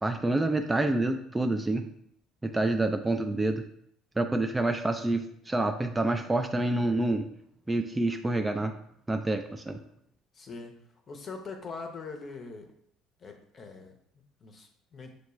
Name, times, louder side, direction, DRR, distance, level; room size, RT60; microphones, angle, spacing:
voice 1, 0.0-1.9 2.4-3.6 4.2-7.3 7.7-8.7 9.1-9.8, right 2 dB, 15° right, 5 dB, 0.3 m, -27 dB
voice 2, 10.3-10.7 11.1-12.7 13.2-15.1, left 4 dB, 35° left, 4 dB, 0.7 m, -42 dB
6.3 x 2.2 x 3.1 m, 0.70 s
figure-of-eight pair, 55°, 0 cm